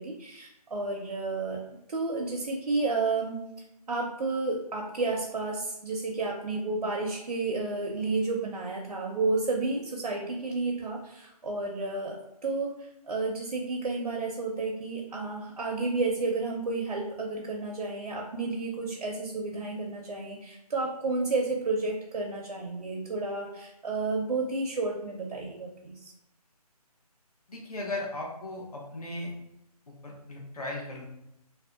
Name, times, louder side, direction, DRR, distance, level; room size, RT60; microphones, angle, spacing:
voice 1, 0.0-1.6 1.9-3.4 3.9-26.1, right 3 dB, 85° right, -1 dB, 0.6 m, -31 dB
voice 2, 27.5-29.3 29.9-31.0, left 2 dB, 65° left, -2 dB, 0.8 m, -37 dB
2.6 x 2.1 x 2.4 m, 0.85 s
figure-of-eight pair, 175°, 21 cm